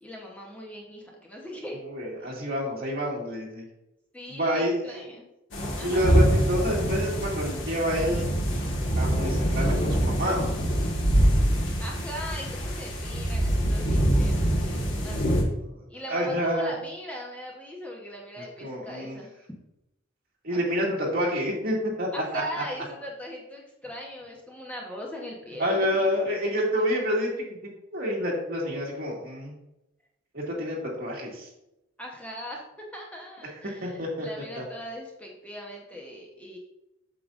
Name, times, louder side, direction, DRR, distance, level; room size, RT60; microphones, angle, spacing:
voice 1, 0.0-1.8 4.1-5.2 5.7-6.1 11.8-15.2 15.9-19.5 20.5-20.6 22.1-26.1 32.0-32.6 32.9-36.6, equal, 5° left, -2 dB, 1.0 m, -40 dB
voice 2, 1.9-3.6 4.3-5.0 5.5-8.3 9.0-10.6 15.7-15.8 16.1-16.7 18.4-19.2 20.4-22.1 22.3-22.4 25.6-29.5 30.3-31.5 33.8-34.3 34.6-34.7, equal, 50° right, -3 dB, 2.1 m, -28 dB
sound 1, 5.5-15.4, right 1 dB, 70° left, 1.7 m, -25 dB
8.3 x 6.7 x 2.5 m, 0.89 s
head